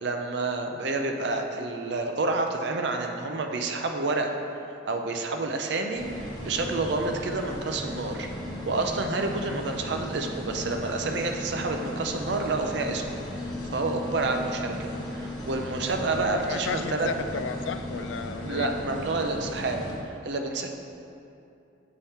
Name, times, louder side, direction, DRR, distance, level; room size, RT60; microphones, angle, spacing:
voice 1, 0.0-4.3 4.9-8.3 8.7-13.2 13.7-17.1 18.4-19.8 20.2-20.7, right 3 dB, 65° right, 4 dB, 0.5 m, -29 dB
sound 1, 5.9-20.0, left 1 dB, 20° left, 1.0 m, -36 dB
voice 2, 16.4-18.7, left 6 dB, 80° left, 9 dB, 0.3 m, -34 dB
7.3 x 4.2 x 3.5 m, 2.6 s
head